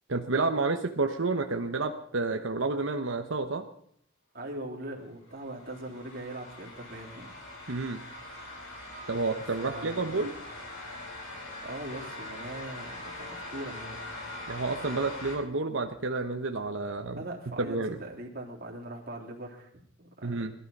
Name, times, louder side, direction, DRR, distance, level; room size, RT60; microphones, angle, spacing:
voice 1, 0.1-3.6 7.7-8.0 9.1-10.3 14.5-17.2 17.6-18.0 20.2-20.5, right 3 dB, 75° right, 5 dB, 1.1 m, -30 dB
voice 2, 4.3-7.3 9.5-10.3 11.6-14.0 17.1-20.3, right 1 dB, 50° right, -1 dB, 3.5 m, -41 dB
sound 1, 5.3-15.4, left 2 dB, 80° left, 6.6 m, -42 dB
21.0 x 12.5 x 5.4 m, 0.66 s
head